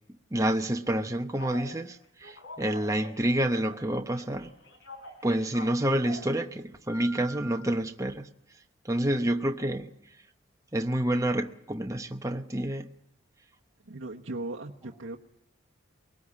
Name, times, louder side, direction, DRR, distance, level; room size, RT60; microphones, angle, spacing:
voice 1, 0.3-4.5 5.2-8.3 8.8-9.9 10.7-12.9, right 1 dB, 15° right, 0.9 m, -28 dB
Telephone, 1.4-1.7 2.2-3.9 4.1-6.3 6.9-7.6, equal, 60° left, 4.3 m, -45 dB
voice 2, 13.8-15.2, right 2 dB, 70° right, 1.2 m, -37 dB
22.5 x 18.5 x 8.6 m
head